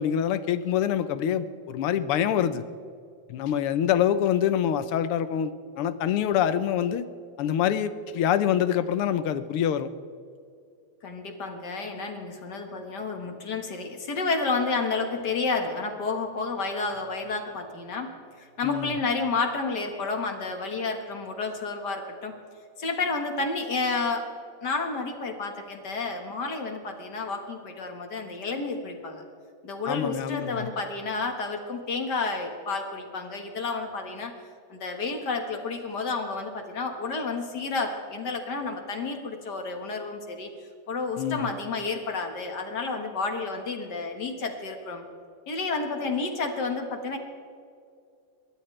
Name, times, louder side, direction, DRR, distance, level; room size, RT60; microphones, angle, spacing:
voice 1, 0.0-2.6 3.3-7.0 7.4-9.9 18.6-18.9 29.9-30.7 41.2-41.5, left 9 dB, 90° left, 12 dB, 1.8 m, -25 dB
voice 2, 11.0-18.1 18.4-22.3 22.8-24.3 24.6-29.2 29.6-34.3 34.7-40.5 40.9-45.0 45.5-47.2, left 3 dB, 50° left, 4 dB, 2.1 m, -30 dB
27.5 x 13.0 x 3.3 m, 2.3 s
omnidirectional pair, 2.4 m